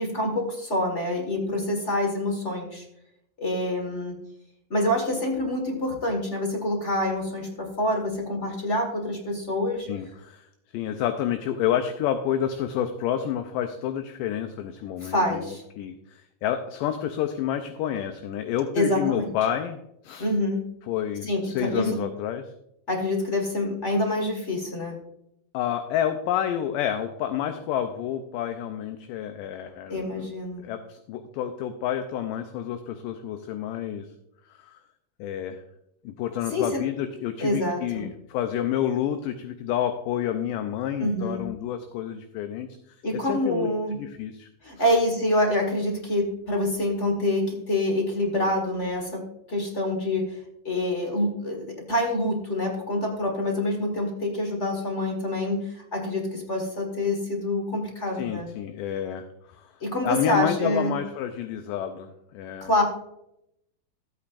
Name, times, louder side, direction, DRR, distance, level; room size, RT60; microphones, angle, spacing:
voice 1, 0.0-2.8 3.4-4.2 4.7-9.9 15.0-15.6 18.7-19.3 20.2-20.7 21.3-22.0 22.9-25.0 29.9-30.7 36.5-36.8 37.4-38.1 41.0-41.5 43.0-44.0 44.6-58.5 59.8-61.0 62.6-62.8, left 1 dB, 40° left, 1 dB, 1.0 m, -26 dB
voice 2, 9.9-10.5 10.7-20.3 20.9-22.5 25.5-30.3 30.6-34.1 34.6-34.8 35.2-35.6 36.0-44.5 44.8-45.0 58.1-59.7 60.0-62.8, left 10 dB, 80° left, 8 dB, 2.2 m, -29 dB
15.0 x 8.5 x 2.5 m, 0.80 s
omnidirectional pair, 4.0 m